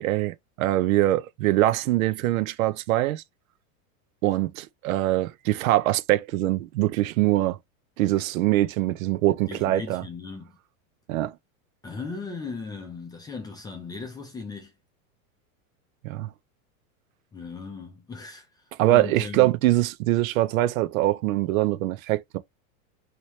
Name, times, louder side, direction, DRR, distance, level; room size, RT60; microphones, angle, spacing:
voice 1, 0.0-3.2 4.2-7.6 8.0-10.0 11.1-11.3 16.0-16.3 18.8-22.4, right 15 dB, 70° right, 0.6 m, -23 dB
voice 2, 9.5-10.5 11.8-14.7 17.3-18.6 18.9-19.6, left 4 dB, 10° left, 0.5 m, -37 dB
3.0 x 2.9 x 3.1 m
supercardioid pair, 140°, 42 cm